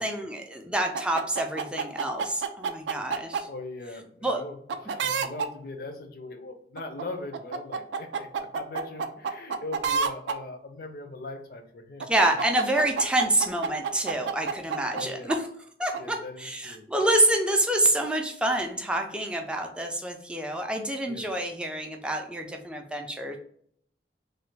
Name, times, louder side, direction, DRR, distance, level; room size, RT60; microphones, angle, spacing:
voice 1, 0.0-3.5 4.2-4.4 12.1-15.4 15.8-23.4, right 1 dB, 5° right, 3 dB, 0.3 m, -27 dB
sound 1, 0.9-3.4 4.7-5.5 6.8-7.0 7.3-10.4 12.0-15.0 15.3-15.4 15.9-16.0, right 5 dB, 85° right, 0.3 m, -29 dB
voice 2, 3.5-4.6 4.8-12.1 14.9-15.3 16.0-16.9 21.1-21.3, left 2 dB, 55° left, 6 dB, 0.5 m, -40 dB
3.2 x 2.2 x 3.2 m, 0.62 s
head